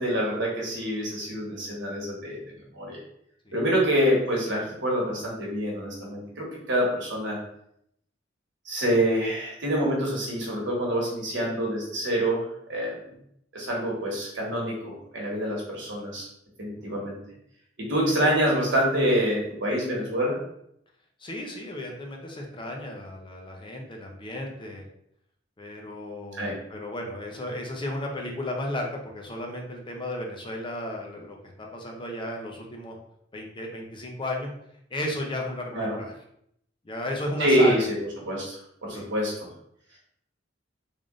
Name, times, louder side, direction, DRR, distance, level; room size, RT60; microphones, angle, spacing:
voice 1, 0.0-3.0 3.5-7.4 8.6-13.0 13.5-16.3 16.6-17.2 17.8-20.4 26.3-26.6 35.7-36.0 37.4-37.9 38.2-39.5, equal, 70° right, -3 dB, 1.3 m, -26 dB
voice 2, 21.2-24.9 25.6-33.0 33.3-34.5 34.9-36.1 36.8-37.8 38.9-39.1, left 1 dB, 25° left, 1 dB, 0.6 m, -34 dB
3.5 x 2.5 x 3.6 m, 0.73 s
head